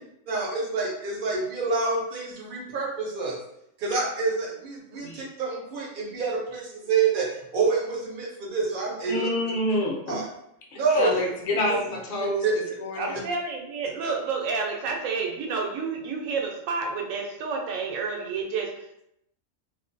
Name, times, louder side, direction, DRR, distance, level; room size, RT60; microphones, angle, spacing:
voice 1, 0.3-3.4 3.8-9.3 9.7-9.8 10.1-10.3 10.7-11.2 11.7-11.8 12.2-12.6 14.0-14.1, right 4 dB, 60° right, -1 dB, 0.6 m, -27 dB
voice 2, 9.1-10.2 10.9-13.2, left 1 dB, 55° left, -1 dB, 0.7 m, -28 dB
voice 3, 13.0-19.1, right 4 dB, 85° right, 1 dB, 1.0 m, -30 dB
2.5 x 2.2 x 2.5 m, 0.77 s
omnidirectional pair, 1.3 m